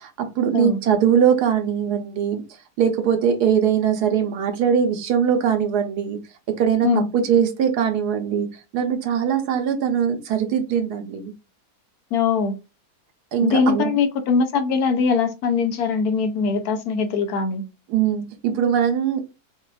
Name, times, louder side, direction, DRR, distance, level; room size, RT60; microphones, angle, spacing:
voice 1, 0.0-2.4 2.8-11.3 13.3-13.9 17.9-19.2, right 8 dB, 80° right, 1.3 m, -21 dB
voice 2, 12.1-12.6 13.4-17.6, left 5 dB, 70° left, 1.1 m, -21 dB
5.8 x 2.4 x 2.4 m
omnidirectional pair, 1.7 m